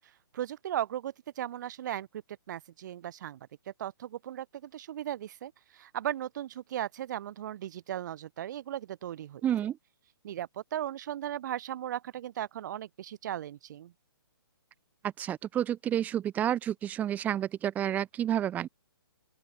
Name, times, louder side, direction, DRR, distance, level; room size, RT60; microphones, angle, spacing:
voice 1, 0.3-2.1 2.5-9.4 10.2-13.9, right 11 dB, 45° right, 1.8 m, -37 dB
voice 2, 9.4-9.8 15.2-18.7, right 10 dB, 10° right, 0.6 m, -30 dB
open air
hypercardioid pair, 145°, 13 cm